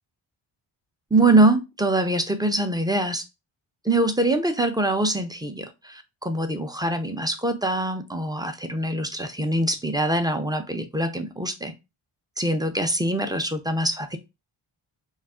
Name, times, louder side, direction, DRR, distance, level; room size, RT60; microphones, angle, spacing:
voice 1, 1.1-3.2 3.8-11.7 12.4-14.2, right 2 dB, 10° right, 7 dB, 0.3 m, -23 dB
2.3 x 2.0 x 3.5 m, 0.24 s
cardioid pair, 65°, 50 cm